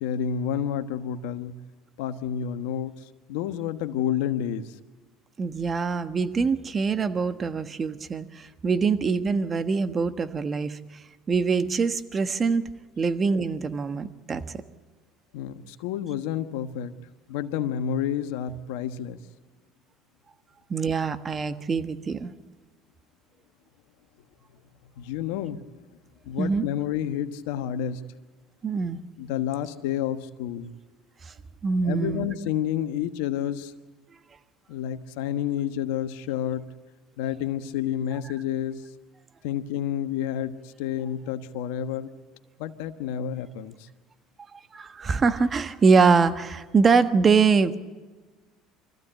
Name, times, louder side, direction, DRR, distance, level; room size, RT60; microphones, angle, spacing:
voice 1, 0.0-1.5 2.0-3.0 3.3-4.6 15.3-16.9 17.3-19.2 25.0-25.6 26.2-28.0 29.2-30.7 31.8-33.7 34.7-36.7 37.2-38.8 39.4-42.1 42.6-43.7, left 9 dB, 80° left, 10 dB, 1.2 m, -29 dB
voice 2, 5.4-10.8 11.3-12.6 13.0-14.6 20.7-22.3 26.4-26.7 28.6-29.0 31.3-31.4 31.6-32.3 44.7-47.8, right 5 dB, 35° right, 10 dB, 1.4 m, -24 dB
24.5 x 15.0 x 8.9 m, 1.3 s
hypercardioid pair, 80°, 0 cm